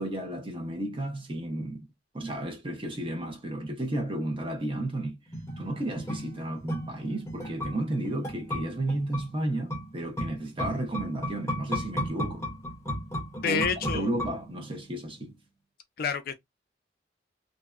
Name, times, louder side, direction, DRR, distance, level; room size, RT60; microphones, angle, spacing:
voice 1, 0.0-1.8 2.1-5.2 5.6-12.5 13.4-15.3, right 1 dB, 30° right, 0.7 m, -33 dB
sound 1, 5.3-14.8 15.1-15.2, equal, 15° left, 0.7 m, -35 dB
voice 2, 13.4-14.1 16.0-16.3, left 6 dB, 55° left, 0.4 m, -28 dB
2.6 x 2.2 x 2.3 m
head